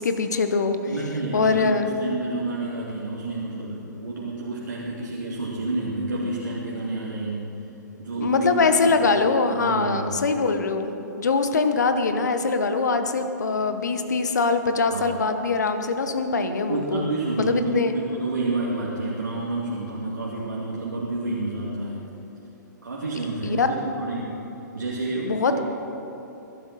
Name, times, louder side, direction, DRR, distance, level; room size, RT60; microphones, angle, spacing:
voice 1, 0.0-0.8 1.3-1.9 8.2-17.1 17.4-17.9 23.4-23.7 25.2-25.6, left 4 dB, 60° left, 8 dB, 1.2 m, -23 dB
voice 2, 0.8-7.5 8.0-9.2 9.5-10.2 14.9-15.2 16.7-22.1 22.8-24.4 24.7-25.6, right 2 dB, 75° right, -5 dB, 2.2 m, -29 dB
22.0 x 12.0 x 4.2 m, 2.9 s
figure-of-eight pair, 115°, 10 cm